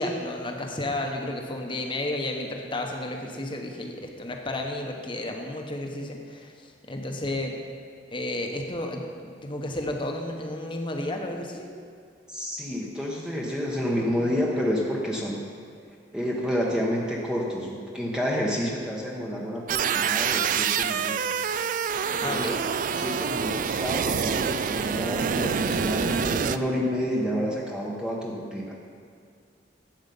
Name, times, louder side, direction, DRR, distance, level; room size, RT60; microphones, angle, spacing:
voice 1, 0.0-7.5 8.1-11.7 22.2-22.6, left 1 dB, 25° left, 2 dB, 1.0 m, -32 dB
voice 2, 12.3-15.4 16.1-21.5 22.1-22.6 23.0-28.7, equal, 5° right, -3 dB, 0.9 m, -29 dB
sound 1, 19.7-26.6, right 7 dB, 45° right, 0.3 m, -26 dB
12.0 x 7.9 x 5.4 m, 2.2 s
head